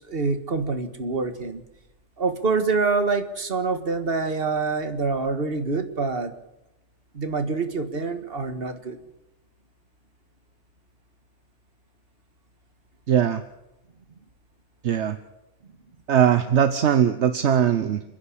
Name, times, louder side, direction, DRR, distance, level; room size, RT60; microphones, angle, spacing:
voice 1, 0.0-1.6 2.2-6.3 7.1-9.0, right 4 dB, 55° right, 9 dB, 1.9 m, -26 dB
voice 2, 13.1-13.4 14.8-15.2 16.1-18.0, right 9 dB, 75° right, 11 dB, 1.2 m, -20 dB
29.5 x 10.5 x 8.5 m, 0.92 s
omnidirectional pair, 1.2 m